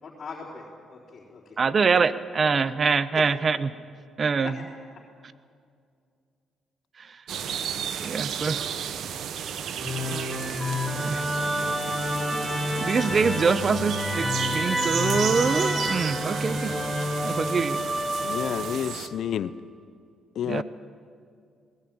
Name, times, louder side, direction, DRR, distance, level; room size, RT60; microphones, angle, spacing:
voice 1, 0.0-1.8 3.1-3.2 4.4-4.6, left 5 dB, 45° left, -3 dB, 3.9 m, -41 dB
voice 2, 1.6-3.7 4.2-4.5 8.0-8.6 11.1-11.2 12.8-16.7 17.2-17.8 20.4-20.6, right 5 dB, 40° right, 15 dB, 1.0 m, -24 dB
sound 1, 7.3-19.1, right 8 dB, 70° right, 1.3 m, -34 dB
Musical instrument, 9.8-19.0, equal, 5° right, 3.2 m, -29 dB
voice 3, 18.2-19.5 20.4-20.6, left 9 dB, 70° left, 15 dB, 0.7 m, -29 dB
21.0 x 19.0 x 8.9 m, 2.3 s
cardioid pair, 90°, 0 cm